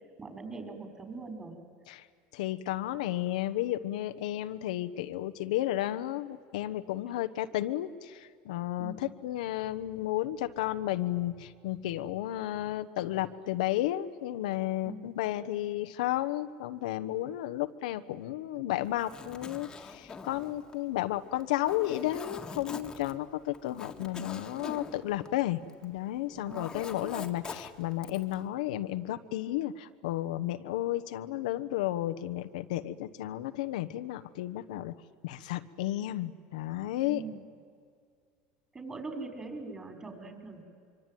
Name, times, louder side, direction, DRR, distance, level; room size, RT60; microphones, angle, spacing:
voice 1, 0.2-1.6 8.8-9.1 14.8-15.1 26.3-27.1 37.0-37.4 38.7-40.6, right 3 dB, 20° right, 5 dB, 5.2 m, -42 dB
voice 2, 2.3-34.9 35.2-37.2, left 14 dB, 90° left, 10 dB, 1.1 m, -33 dB
Zipper (clothing), 18.9-26.0 26.3-28.4, left 5 dB, 15° left, 1.9 m, -44 dB
25.0 x 24.5 x 9.3 m, 2.1 s
supercardioid pair, 135°, 4 cm